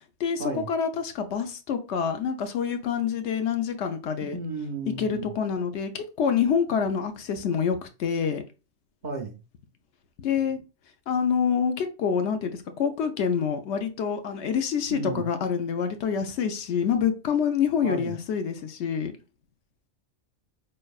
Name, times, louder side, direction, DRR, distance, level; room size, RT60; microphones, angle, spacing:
voice 1, 0.2-4.4 5.0-8.4 10.2-10.6 11.1-19.1, left 7 dB, 70° left, 0.9 m, -27 dB
voice 2, 4.3-5.3 9.0-9.4 14.9-15.2 17.8-18.2, right 3 dB, 50° right, 0.6 m, -33 dB
4.4 x 3.2 x 2.3 m
omnidirectional pair, 1.2 m